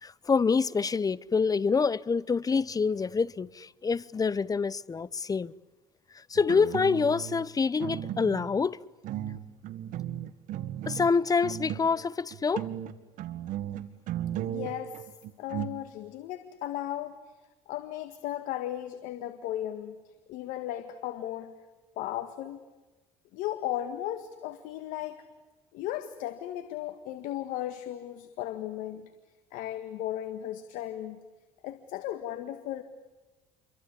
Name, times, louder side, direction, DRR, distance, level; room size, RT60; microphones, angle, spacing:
voice 1, 0.0-5.5 6.3-8.8 10.9-12.7, left 5 dB, 25° left, 0.9 m, -26 dB
sound 1, 6.4-7.4 7.8-8.6 9.0-12.1 12.3-15.7, right 11 dB, 70° right, 1.8 m, -36 dB
voice 2, 14.4-15.1 15.4-17.2 17.7-20.0 20.3-21.6 22.0-22.6 23.3-25.2 25.7-29.1 29.5-31.2 31.6-32.8, left 12 dB, 80° left, 1.8 m, -36 dB
28.5 x 23.5 x 8.5 m
supercardioid pair, 80°, 13 cm